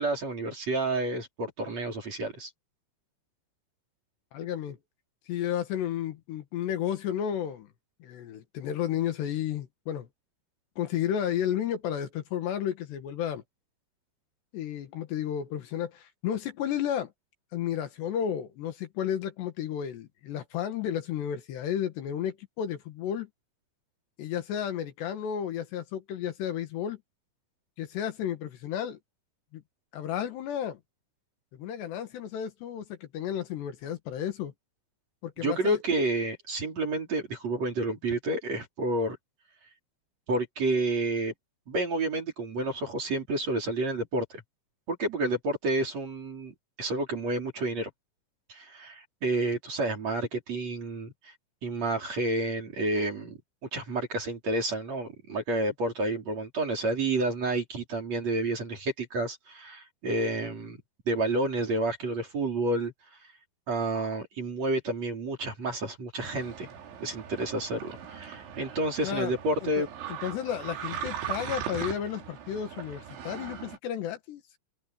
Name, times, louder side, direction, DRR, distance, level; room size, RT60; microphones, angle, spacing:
voice 1, 0.0-2.5 35.4-39.2 40.3-41.3 41.7-44.4 44.9-47.9 48.5-51.3 51.6-53.4 53.7-62.9 63.7-66.7 67.0-69.9, right 2 dB, 35° right, 5.3 m, -30 dB
voice 2, 4.3-4.8 5.3-7.7 8.0-10.1 10.8-13.4 14.5-17.1 17.5-23.3 24.2-27.0 27.8-29.0 29.5-29.6 29.9-30.8 31.5-34.5 35.2-35.8 69.0-69.3 69.8-74.4, left 9 dB, 70° left, 3.7 m, -32 dB
sound 1, 66.2-73.8, right 9 dB, 85° right, 5.3 m, -39 dB
open air
omnidirectional pair, 5.3 m